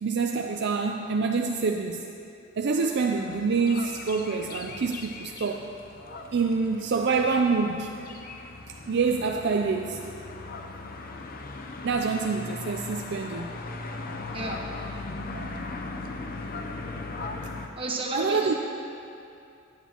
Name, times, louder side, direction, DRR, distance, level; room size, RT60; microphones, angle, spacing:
voice 1, 0.0-2.0 2.6-5.7 6.3-8.1 8.9-10.0 11.8-13.5 15.3-15.6 16.4-16.5 18.1-18.5, right 4 dB, 55° right, 3 dB, 0.4 m, -26 dB
sound 1, 3.1-17.7, left 3 dB, 45° left, 0.6 m, -39 dB
voice 2, 14.3-14.7 17.8-18.5, right 2 dB, 25° right, -1 dB, 1.2 m, -31 dB
17.0 x 9.2 x 2.9 m, 2.6 s
head